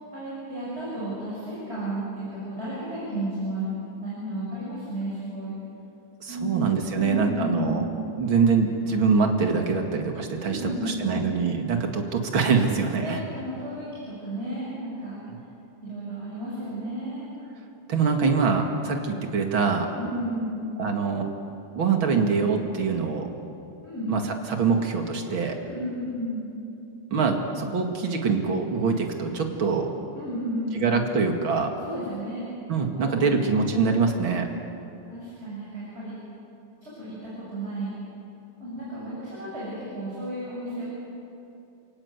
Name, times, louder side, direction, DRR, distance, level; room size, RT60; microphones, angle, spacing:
voice 1, 0.1-3.7 4.0-5.6 6.3-6.7 7.0-7.9 10.4-11.3 13.0-15.2 15.8-17.3 19.9-20.7 23.8-24.2 25.6-26.5 30.1-30.9 31.8-32.5 33.0-33.9 35.1-36.2 36.8-37.9 38.6-40.8, right 1 dB, 30° right, -8 dB, 6.9 m, -33 dB
voice 2, 6.2-7.8 8.1-13.2 17.9-19.9 20.8-21.2 21.8-23.3 24.1-24.2 24.5-25.6 27.1-29.9 30.7-31.7 32.7-34.5, right 5 dB, 65° right, 3 dB, 2.9 m, -24 dB
28.5 x 17.5 x 8.2 m, 2.8 s
omnidirectional pair, 2.4 m